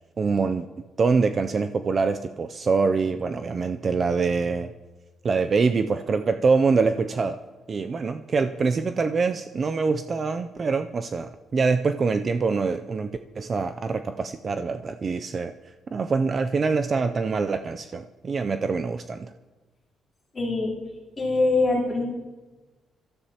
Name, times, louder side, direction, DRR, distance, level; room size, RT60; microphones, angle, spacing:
voice 1, 0.2-0.7 1.0-4.7 5.2-7.4 7.7-15.5 15.9-19.3, right 4 dB, 30° right, 9 dB, 0.4 m, -24 dB
voice 2, 20.3-20.7 21.2-22.0, left 2 dB, 20° left, -6 dB, 3.5 m, -23 dB
24.5 x 13.5 x 2.9 m, 1.2 s
cardioid pair, 175°, 0 cm